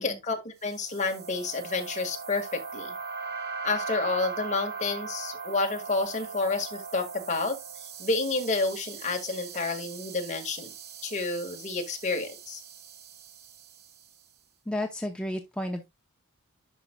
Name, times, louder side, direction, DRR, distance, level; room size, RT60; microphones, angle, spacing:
voice 1, 0.0-2.9 3.6-7.6 8.0-10.7 11.0-12.6, left 3 dB, 35° left, 1.7 m, -30 dB
sound 1, 0.7-14.1, right 5 dB, 50° right, 1.1 m, -40 dB
voice 2, 14.7-15.9, left 1 dB, 5° left, 0.7 m, -32 dB
11.0 x 5.1 x 2.2 m
head